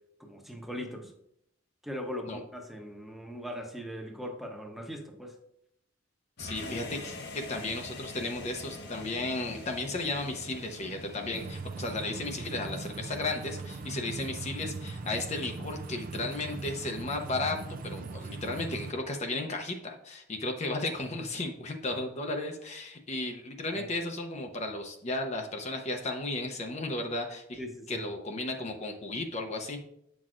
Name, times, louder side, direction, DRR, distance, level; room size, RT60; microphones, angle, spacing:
voice 1, 0.2-1.1 1.8-5.3 23.7-23.9 27.6-28.0, equal, ahead, 2 dB, 0.9 m, -40 dB
sound 1, 6.4-11.5, left 2 dB, 60° left, 1.0 m, -43 dB
voice 2, 6.4-27.6 27.9-29.8, left 2 dB, 35° left, 3 dB, 0.7 m, -34 dB
sound 2, 11.3-18.9, right 3 dB, 45° right, 0.4 m, -40 dB
8.5 x 6.1 x 2.5 m, 0.74 s
head